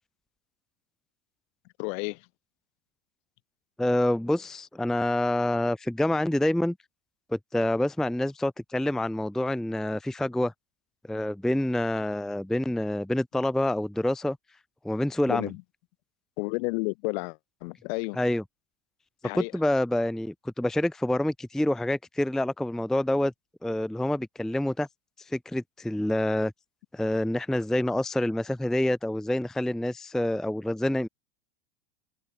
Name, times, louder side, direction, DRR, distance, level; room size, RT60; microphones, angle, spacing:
voice 1, 1.8-2.2 15.3-15.6 16.4-18.2 19.2-19.5, left 32 dB, 65° left, 4.0 m, -31 dB
voice 2, 3.8-6.8 7.3-10.5 11.1-14.4 14.8-15.5 18.1-18.4 19.3-23.3 23.6-24.9 25.3-26.5 26.9-31.1, left 1 dB, ahead, 0.6 m, -27 dB
hypercardioid pair, 95°, 34 cm